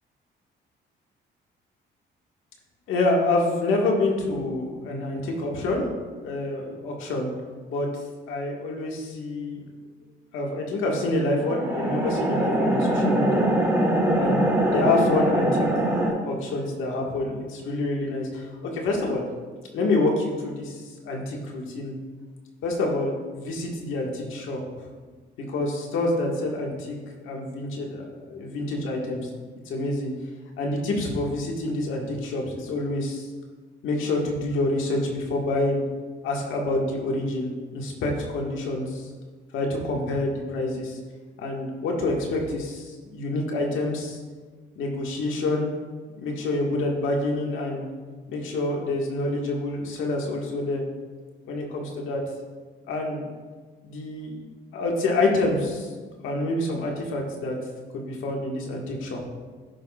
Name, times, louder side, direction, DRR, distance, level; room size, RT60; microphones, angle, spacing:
voice 1, 2.9-5.8 6.2-7.3 7.7-7.9 8.3-9.6 10.3-13.5 14.2-14.4 14.7-15.7 16.2-19.2 19.7-21.9 22.6-24.6 25.5-27.0 27.2-29.3 29.7-30.1 30.6-33.3 33.8-35.8 36.2-39.1 39.5-41.0 41.4-44.2 44.8-45.7 46.2-47.8 48.3-50.8 51.5-52.2 52.9-53.2 53.8-54.4 54.7-55.9 56.2-57.6 57.9-59.2, left 2 dB, 85° left, -1 dB, 1.8 m, -27 dB
sound 1, 11.4-16.1, right 1 dB, 15° right, 2.6 m, -23 dB
16.0 x 5.8 x 2.4 m, 1.5 s
cardioid pair, 90°, 20 cm